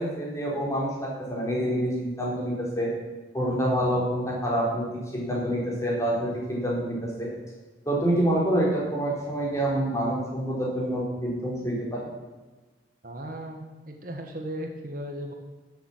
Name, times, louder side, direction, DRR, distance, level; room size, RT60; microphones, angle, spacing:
voice 1, 0.0-2.9 3.3-4.9 5.1-7.3 7.9-12.1, right 1 dB, 15° left, -4 dB, 4.2 m, -27 dB
voice 2, 13.0-15.3, equal, 50° right, 3 dB, 1.5 m, -36 dB
14.0 x 7.3 x 7.3 m, 1.2 s
head